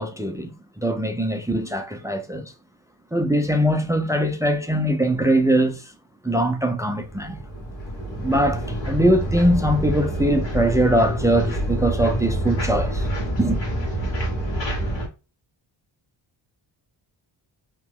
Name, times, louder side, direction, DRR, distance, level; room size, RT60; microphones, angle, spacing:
voice 1, 0.0-2.5 3.1-5.9 6.2-7.4 8.2-13.1 13.4-13.6, right 1 dB, 5° right, 0.3 m, -22 dB
sound 1, 7.0-15.1, right 1 dB, 65° left, 1.6 m, -27 dB
2.9 x 2.2 x 3.5 m
cardioid pair, 90°, 48 cm